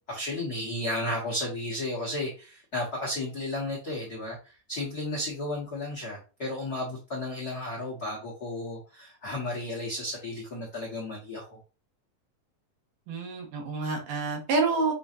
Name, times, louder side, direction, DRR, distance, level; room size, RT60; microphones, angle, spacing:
voice 1, 0.1-11.6, left 1 dB, 75° left, -4 dB, 0.8 m, -33 dB
voice 2, 13.1-14.9, right 3 dB, 85° right, 0 dB, 3.0 m, -28 dB
7.1 x 2.7 x 2.5 m, 0.34 s
omnidirectional pair, 3.7 m